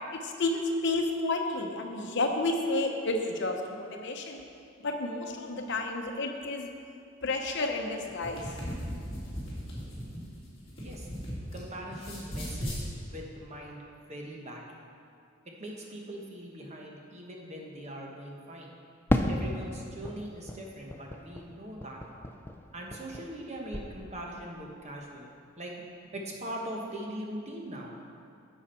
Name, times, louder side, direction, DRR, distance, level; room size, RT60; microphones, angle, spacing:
voice 1, 0.1-4.4 4.8-6.7 7.2-8.5, left 2 dB, 55° left, 3 dB, 0.9 m, -31 dB
sound 1, 8.2-11.6 11.9-12.8, equal, 25° left, 2.5 m, -37 dB
voice 2, 10.8-11.1 11.5-13.8 14.1-14.6 15.4-18.7 19.3-22.0 22.7-25.3 25.6-25.9 26.1-28.0, right 1 dB, 30° right, -1 dB, 1.1 m, -41 dB
Fireworks, 19.1-23.5 23.7-24.5, left 1 dB, 10° left, 0.3 m, -34 dB
10.5 x 7.2 x 4.4 m, 2.4 s
head